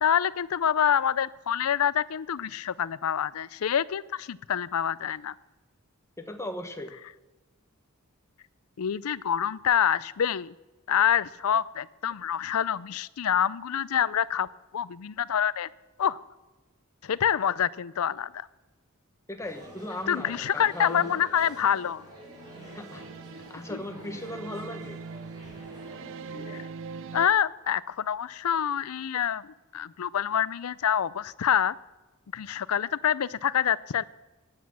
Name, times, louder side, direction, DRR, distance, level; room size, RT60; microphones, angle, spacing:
voice 1, 0.0-5.3 8.8-10.5 10.9-14.5 14.7-15.7 16.0-16.2 17.0-18.5 20.1-22.0 23.7-23.8 26.5-26.6 27.1-31.8 32.3-34.0, left 9 dB, 75° left, 20 dB, 0.5 m, -26 dB
voice 2, 6.2-6.9 19.3-21.1 22.6-23.0 23.5-25.0, left 1 dB, 15° left, 6 dB, 1.2 m, -37 dB
sound 1, 19.4-26.6, right 1 dB, 20° right, 5.5 m, -47 dB
sound 2, 22.2-27.3, right 5 dB, 60° right, 0.5 m, -42 dB
15.0 x 9.5 x 6.2 m, 1.1 s
head